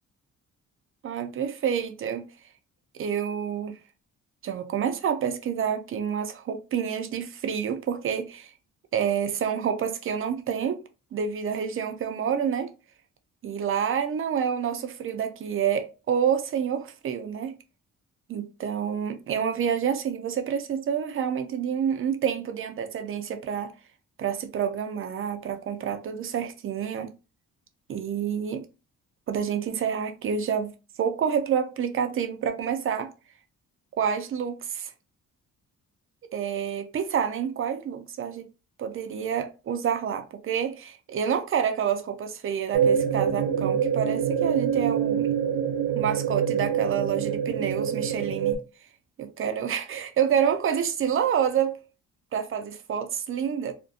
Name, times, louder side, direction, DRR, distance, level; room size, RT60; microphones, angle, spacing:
voice 1, 1.0-2.3 2.9-3.8 4.4-8.5 8.9-10.8 11.1-12.7 13.4-17.5 18.3-23.7 24.2-27.1 27.9-28.7 29.3-30.7 31.0-33.1 34.0-34.9 36.3-38.5 38.8-45.3 45.9-48.6 49.2-51.8 52.3-53.7, right 8 dB, 40° right, 0.4 m, -28 dB
sound 1, 42.7-48.6, right 8 dB, 90° right, 0.7 m, -25 dB
2.5 x 2.1 x 2.6 m
cardioid pair, 120°, 32 cm